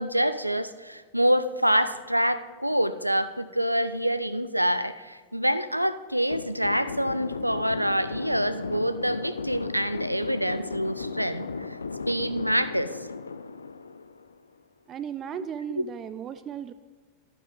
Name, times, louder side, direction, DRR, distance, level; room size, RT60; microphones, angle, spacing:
voice 1, 0.0-11.8 12.1-13.1, equal, 90° right, 13 dB, 0.4 m, -26 dB
sound 1, 6.3-14.6, left 4 dB, 75° left, 0.4 m, -36 dB
voice 2, 14.9-16.7, right 9 dB, 30° right, 13 dB, 0.4 m, -36 dB
11.5 x 9.9 x 3.8 m, 1.5 s
figure-of-eight pair, 90°, 0 cm